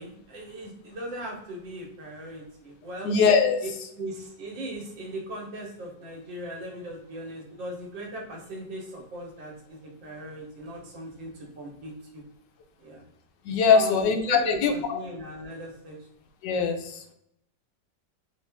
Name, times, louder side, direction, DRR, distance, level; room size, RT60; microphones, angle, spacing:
voice 1, 0.0-3.2 4.0-12.2 12.8-13.0 13.7-16.0, right 1 dB, 85° right, -1 dB, 1.9 m, -38 dB
voice 2, 3.0-3.6 13.5-14.7 16.4-16.8, left 5 dB, 80° left, 5 dB, 1.2 m, -21 dB
4.4 x 2.5 x 3.4 m, 0.76 s
omnidirectional pair, 1.9 m